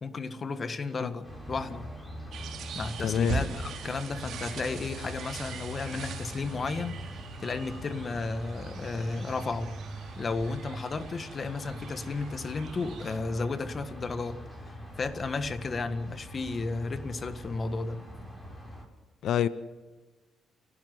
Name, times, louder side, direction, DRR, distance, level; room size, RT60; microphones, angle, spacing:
voice 1, 0.0-1.9 2.7-7.0 7.4-9.7 10.2-14.4 14.6-18.0, left 3 dB, 40° left, 10 dB, 1.7 m, -33 dB
sound 1, 1.2-18.8, equal, 15° left, 7.7 m, -42 dB
sound 2, 2.3-13.2, right 5 dB, 70° right, 2.8 m, -42 dB
voice 2, 3.0-3.4 19.2-19.5, left 9 dB, 70° left, 14 dB, 0.8 m, -26 dB
30.0 x 12.0 x 7.9 m, 1.2 s
cardioid pair, 90°, 0 cm